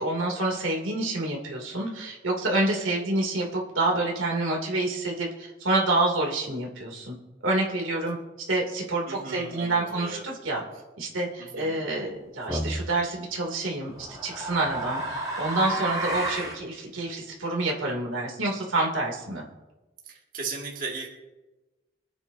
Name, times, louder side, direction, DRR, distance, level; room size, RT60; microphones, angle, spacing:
voice 1, 0.0-7.1 7.4-8.2 8.5-10.6 11.0-14.0 14.2-19.4, right 2 dB, 85° right, -1 dB, 2.8 m, -27 dB
voice 2, 9.1-10.4 11.4-11.9 20.0-21.1, right 4 dB, 45° right, -3 dB, 2.2 m, -37 dB
sound 1, 12.5-12.9 13.9-16.6, right 2 dB, 20° right, 2.9 m, -31 dB
25.5 x 8.9 x 2.8 m, 1.1 s
head